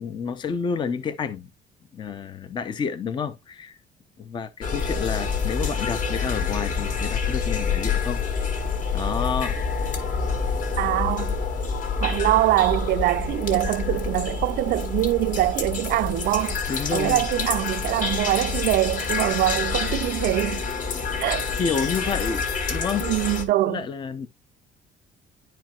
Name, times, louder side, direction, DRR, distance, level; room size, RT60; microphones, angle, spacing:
voice 1, 0.0-1.5 1.9-3.8 4.2-8.2 8.9-9.6 16.7-17.3 21.6-23.1 23.7-24.3, left 6 dB, 25° left, 0.6 m, -29 dB
sound 1, 4.6-23.4, left 5 dB, 45° left, 1.5 m, -27 dB
voice 2, 10.8-11.3 12.0-16.6 16.9-20.6 21.2-21.4 23.0-23.8, right 15 dB, 60° right, 0.5 m, -23 dB
10.5 x 4.5 x 2.3 m
cardioid pair, 165°, 18 cm